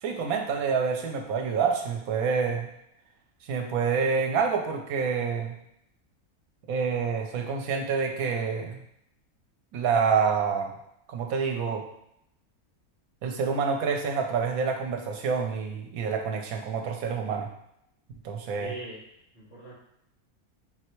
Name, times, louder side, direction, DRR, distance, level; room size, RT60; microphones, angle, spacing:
voice 1, 0.0-2.7 3.5-5.5 6.7-8.8 9.7-10.7 11.1-11.8 13.2-17.5 18.2-18.7, right 5 dB, 80° right, 3 dB, 1.1 m, -27 dB
voice 2, 18.6-19.0 19.3-19.7, right 2 dB, 50° left, -6 dB, 1.5 m, -41 dB
4.3 x 3.2 x 3.0 m, 0.76 s
omnidirectional pair, 1.5 m